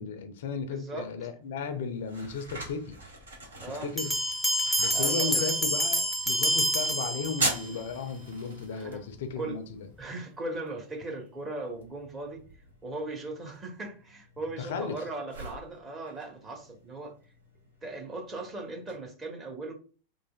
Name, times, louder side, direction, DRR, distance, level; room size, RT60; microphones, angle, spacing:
voice 1, 0.0-3.0 3.8-4.1 4.8-9.9 14.6-15.0, left 5 dB, 55° left, 0.4 m, -35 dB
voice 2, 0.7-1.1 3.6-3.9 4.9-5.5 8.7-9.0 9.4-9.6 10.0-12.4 12.8-17.1 17.8-19.7, right 2 dB, 20° right, 0.9 m, -38 dB
sound 1, 1.4-19.0, right 2 dB, 70° right, 1.0 m, -42 dB
Bell, 4.0-7.8, equal, ahead, 0.5 m, -27 dB
3.2 x 2.4 x 2.2 m
figure-of-eight pair, 90°, 0 cm